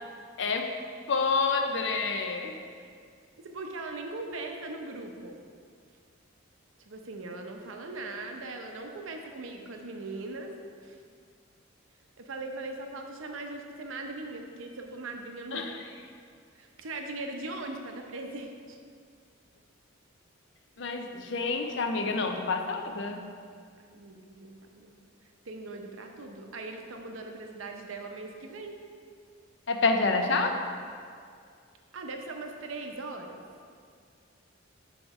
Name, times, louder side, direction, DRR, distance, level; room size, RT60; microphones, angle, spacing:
voice 1, 0.4-0.7 1.1-2.6 15.5-15.8 20.8-23.2 29.7-30.6, left 4 dB, 60° left, 5 dB, 0.5 m, -28 dB
voice 2, 3.4-5.4 6.8-10.5 10.8-11.0 12.2-15.7 16.5-18.8 23.9-25.0 25.5-28.8 31.9-33.4, right 2 dB, 75° right, 3 dB, 0.6 m, -40 dB
4.9 x 4.6 x 5.4 m, 2.2 s
head